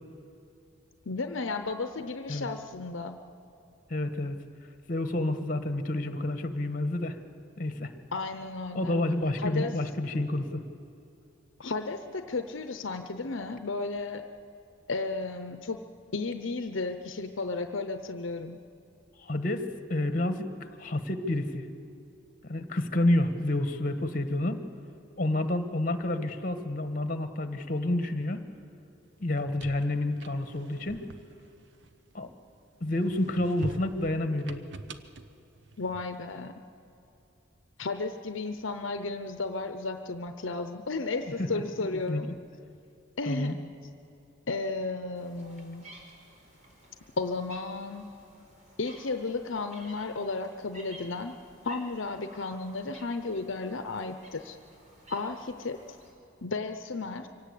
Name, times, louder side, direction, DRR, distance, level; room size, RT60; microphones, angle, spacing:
voice 1, 1.1-3.2 8.1-8.9 9.4-9.7 11.6-14.2 14.9-15.8 16.1-18.6 35.8-36.6 37.8-42.3 43.2-43.6 44.5-45.9 47.2-48.1 48.8-51.4 51.6-54.6 55.1-55.8 56.4-57.3, left 3 dB, 75° left, 8 dB, 0.8 m, -33 dB
voice 2, 3.9-4.4 4.9-7.2 7.6-7.9 8.7-10.6 19.2-20.5 20.8-21.7 22.4-24.7 25.2-28.5 29.2-31.1 32.1-32.3 32.8-34.6 41.4-41.6 42.1-42.3 43.2-43.6, left 1 dB, 45° left, 8 dB, 1.5 m, -29 dB
sound 1, 29.2-32.5 32.9-36.3, right 2 dB, 60° right, 0.9 m, -45 dB
sound 2, 45.2-56.1, right 1 dB, 35° right, 4.3 m, -53 dB
24.5 x 17.5 x 8.5 m, 2.8 s
head